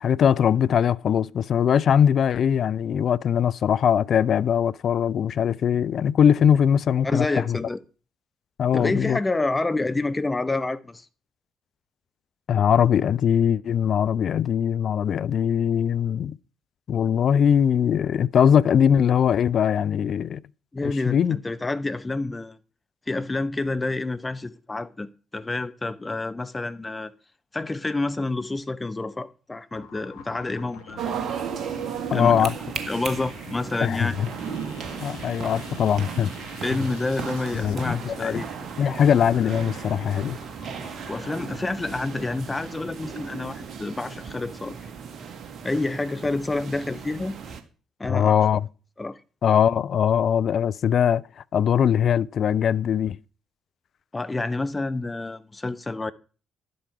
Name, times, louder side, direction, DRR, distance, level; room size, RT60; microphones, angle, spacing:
voice 1, 0.0-7.6 8.6-9.2 12.5-16.4 16.9-20.4 20.8-21.4 32.1-32.5 33.8-34.3 35.0-36.3 37.5-38.4 38.8-40.4 48.1-48.7 49.4-51.2 51.5-53.2, left 8 dB, 55° left, 0.4 m, -21 dB
voice 2, 7.0-7.8 8.7-11.1 20.7-22.6 23.1-25.1 25.3-27.1 27.5-31.1 32.1-32.5 32.9-34.1 35.1-35.2 36.6-38.5 41.1-44.9 45.6-47.4 48.0-48.5 49.0-49.2 54.1-56.1, left 2 dB, 20° left, 0.8 m, -28 dB
sound 1, 29.7-41.6, left 5 dB, 75° left, 1.7 m, -46 dB
sound 2, 31.0-47.6, right 7 dB, 55° right, 1.6 m, -35 dB
11.5 x 7.9 x 4.7 m
figure-of-eight pair, 45°, 0 cm